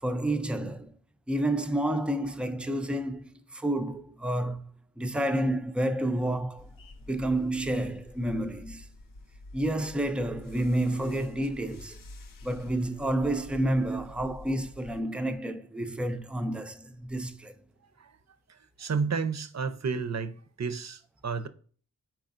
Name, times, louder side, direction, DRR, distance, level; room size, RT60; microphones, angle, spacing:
voice 1, 0.0-1.0 1.3-6.7 7.1-8.9 9.5-12.0 12.4-17.5, right 1 dB, 5° right, 0.3 m, -30 dB
sound 1, 6.6-15.0, left 2 dB, 75° left, 0.5 m, -48 dB
voice 2, 18.5-21.5, right 5 dB, 55° right, 0.5 m, -32 dB
4.7 x 4.4 x 2.5 m
wide cardioid pair, 80°, 33 cm